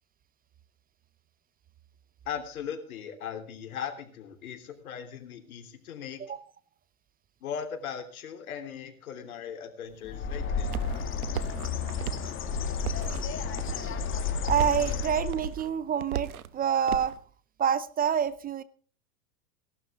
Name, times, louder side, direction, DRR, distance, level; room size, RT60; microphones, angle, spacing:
voice 1, 2.2-6.2 7.4-10.8, left 8 dB, 80° left, 6 dB, 3.3 m, -38 dB
sound 1, 9.9-17.2, right 10 dB, 85° right, 1.1 m, -38 dB
Bird, 10.0-15.6, left 5 dB, 30° left, 2.2 m, -32 dB
voice 2, 14.4-17.2 17.6-18.6, right 8 dB, 20° right, 17 dB, 0.6 m, -27 dB
18.5 x 12.0 x 3.6 m, 0.42 s
hypercardioid pair, 115°, 43 cm